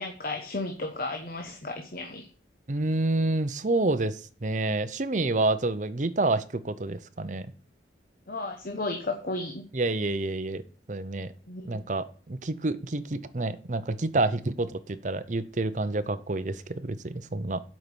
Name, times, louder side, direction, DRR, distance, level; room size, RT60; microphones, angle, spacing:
voice 1, 0.0-2.3 8.3-9.7 11.5-11.8, left 2 dB, 50° left, 4 dB, 1.1 m, -34 dB
voice 2, 2.7-7.5 9.7-10.6 10.9-11.3 11.6-17.6, right 2 dB, 40° right, 12 dB, 0.7 m, -28 dB
7.7 x 5.3 x 6.9 m, 0.39 s
head